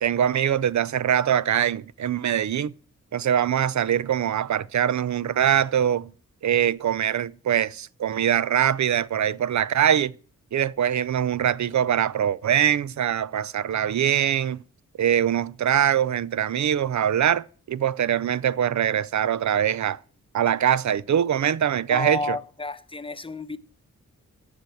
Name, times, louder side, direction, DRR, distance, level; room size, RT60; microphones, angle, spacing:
voice 1, 0.0-2.7 3.1-6.1 6.4-10.1 10.5-14.6 15.0-20.0 20.3-22.4, right 9 dB, 60° right, 0.6 m, -23 dB
voice 2, 21.9-23.6, left 2 dB, 15° left, 0.9 m, -30 dB
9.6 x 7.3 x 7.8 m
cardioid pair, 60°, 33 cm